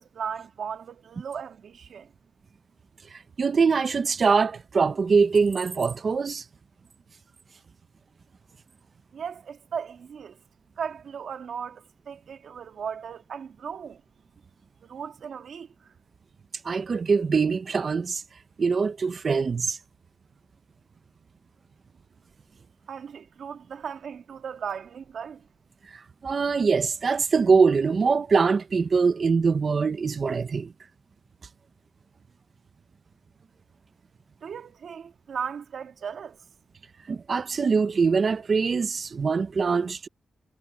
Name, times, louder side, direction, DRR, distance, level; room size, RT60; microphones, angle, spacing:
voice 1, 0.0-2.1 9.1-10.4 10.8-14.0 14.8-15.9 22.9-25.4 34.4-36.4, right 7 dB, 60° right, 2.6 m, -37 dB
voice 2, 3.4-6.4 16.6-18.2 18.6-19.8 26.2-30.7 37.1-40.1, right 5 dB, 40° right, 0.8 m, -23 dB
wide cardioid pair, 130°, 0 cm